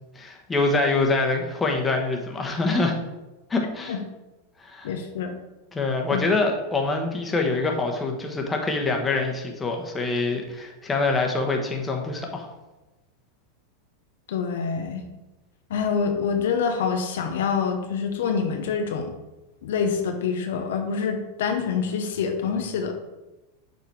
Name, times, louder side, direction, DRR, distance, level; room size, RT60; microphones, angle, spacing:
voice 1, 0.1-2.9 3.5-4.0 4.6-4.9 5.7-12.5, left 3 dB, 15° left, 2 dB, 1.2 m, -25 dB
voice 2, 4.8-5.4 6.1-6.2 14.3-15.0 15.7-19.1 19.6-22.9, left 6 dB, 75° left, 5 dB, 0.8 m, -26 dB
6.9 x 4.0 x 4.7 m, 1.1 s
hypercardioid pair, 110°, 0 cm